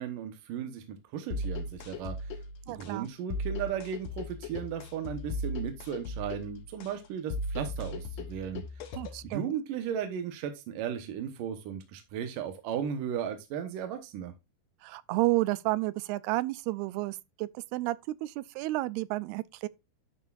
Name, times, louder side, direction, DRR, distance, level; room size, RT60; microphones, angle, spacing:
voice 1, 0.0-2.4 2.7-8.6 9.2-14.3, right 8 dB, 65° right, 2.5 m, -36 dB
sound 1, 1.3-9.3, left 1 dB, 60° left, 1.8 m, -37 dB
voice 2, 2.7-3.1 9.0-9.5 14.8-19.7, right 19 dB, 85° right, 2.6 m, -31 dB
11.5 x 6.3 x 2.5 m
omnidirectional pair, 4.5 m